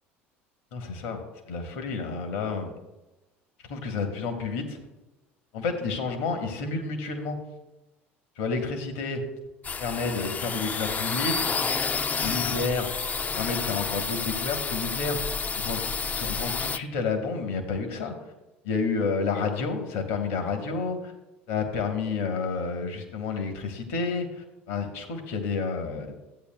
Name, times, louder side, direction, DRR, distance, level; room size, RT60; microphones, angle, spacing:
voice 1, 0.7-1.2 1.5-2.7 3.6-4.8 5.5-7.4 8.4-9.2 9.8-11.4 12.2-15.8 16.1-18.1 18.6-21.1 21.5-26.1, left 4 dB, 70° left, 5 dB, 1.2 m, -30 dB
sound 1, 9.6-16.8, left 5 dB, 25° left, 0.3 m, -30 dB
13.5 x 8.4 x 2.2 m, 1.0 s
hypercardioid pair, 70°, 7 cm